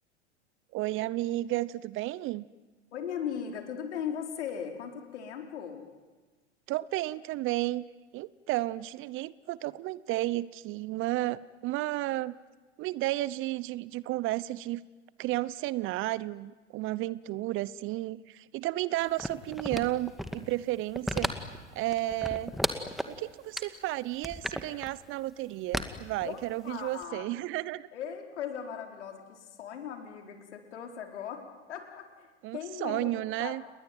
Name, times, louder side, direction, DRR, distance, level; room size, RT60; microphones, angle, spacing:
voice 1, 0.7-2.4 6.7-7.8 8.1-12.3 12.8-14.8 15.2-21.3 21.7-22.5 23.1-27.9 32.4-33.6, right 17 dB, 35° right, 20 dB, 0.8 m, -32 dB
voice 2, 2.9-5.8 26.2-26.4 26.6-27.3 27.9-33.1 33.4-33.5, left 8 dB, 70° left, 4 dB, 4.6 m, -38 dB
sound 1, 19.2-20.5 20.9-21.6 21.9-23.2 23.6-23.7 24.1-24.9 25.7-26.7 27.0-27.1, equal, ahead, 1.9 m, -33 dB
30.0 x 20.5 x 9.3 m, 1.3 s
hypercardioid pair, 95°, 36 cm